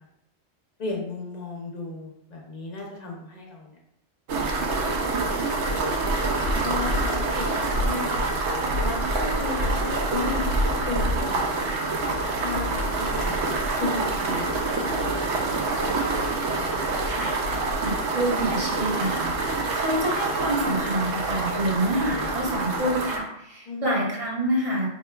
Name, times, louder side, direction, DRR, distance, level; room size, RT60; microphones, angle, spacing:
voice 1, 0.8-3.8 4.7-6.0 6.6-8.4 8.8-11.9 12.4-15.3 23.7-24.0, left 3 dB, 40° left, -1 dB, 0.7 m, -35 dB
sound 1, 4.3-23.2, right 2 dB, 75° right, 0.9 m, -26 dB
voice 2, 17.8-24.9, right 1 dB, 35° right, -3 dB, 0.8 m, -27 dB
4.1 x 3.0 x 2.3 m, 0.78 s
omnidirectional pair, 1.2 m